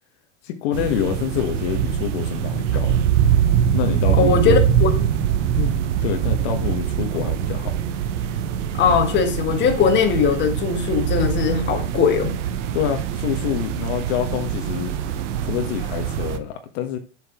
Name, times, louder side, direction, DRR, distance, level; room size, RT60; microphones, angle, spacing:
voice 1, 0.4-3.0 3.7-4.6 6.0-7.7 12.7-14.9 15.4-17.0, left 10 dB, 60° left, 1.4 m, -26 dB
sound 1, 0.7-16.4, right 9 dB, 75° right, 1.1 m, -23 dB
voice 2, 4.1-4.9 5.6-5.8 8.7-12.4, left 6 dB, 30° left, 1.7 m, -20 dB
7.4 x 6.5 x 3.7 m
supercardioid pair, 125°, 36 cm